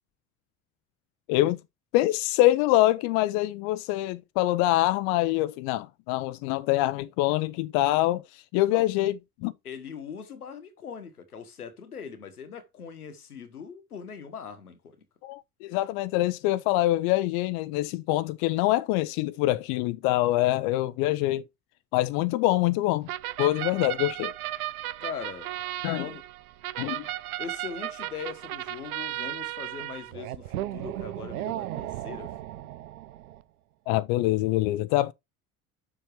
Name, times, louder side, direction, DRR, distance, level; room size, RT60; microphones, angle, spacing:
voice 1, 1.3-1.6 1.9-9.5 15.2-21.4 21.9-23.1 23.4-24.3 25.8-26.1 26.8-27.1 33.9-35.1, left 16 dB, 55° left, 0.7 m, -25 dB
voice 2, 9.6-15.0 25.0-25.6 25.9-26.2 27.4-32.4, left 6 dB, 85° left, 1.3 m, -41 dB
sound 1, 23.1-33.4, right 15 dB, 75° right, 0.7 m, -35 dB
9.7 x 7.1 x 3.1 m
figure-of-eight pair, 60°, 44 cm